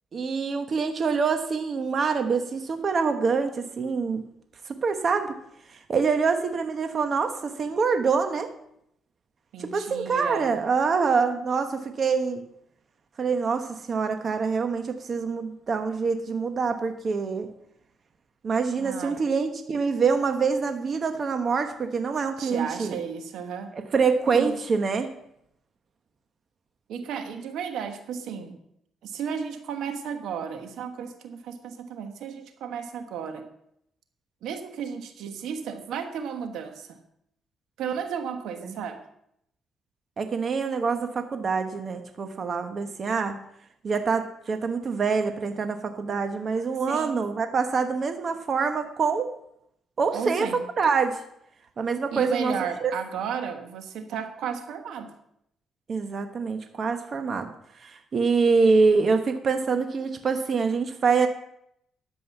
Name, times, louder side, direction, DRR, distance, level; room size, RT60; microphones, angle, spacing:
voice 1, 0.1-4.3 4.6-5.3 5.7-8.5 9.6-12.4 13.2-17.5 18.4-23.0 23.7-25.1 38.7-38.8 40.2-43.4 43.8-49.3 50.0-51.2 51.8-52.5 52.8-52.9 55.9-57.5 57.8-61.3, right 5 dB, 45° right, 6 dB, 1.1 m, -25 dB
voice 2, 9.5-10.6 18.8-19.2 22.4-23.7 24.3-24.6 26.9-28.6 29.0-33.5 34.4-37.0 37.8-39.0 46.9-47.2 50.1-50.6 52.1-55.1, right 7 dB, 80° right, 6 dB, 1.3 m, -33 dB
11.5 x 7.8 x 5.6 m, 0.75 s
cardioid pair, 90°, 0 cm